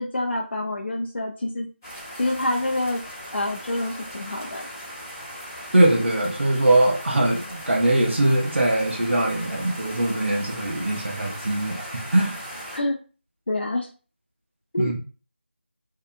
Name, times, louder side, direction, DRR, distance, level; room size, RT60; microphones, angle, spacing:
voice 1, 0.0-1.7 2.2-3.0 3.3-4.7 12.7-13.0 13.5-13.9 14.7-14.9, left 1 dB, 65° left, 0 dB, 0.5 m, -27 dB
sound 1, 1.8-12.8, equal, 15° left, 0.6 m, -38 dB
voice 2, 5.7-12.4 14.8-15.0, right 1 dB, 75° right, -1 dB, 0.8 m, -21 dB
2.7 x 2.3 x 2.5 m, 0.36 s
figure-of-eight pair, 170°, 6 cm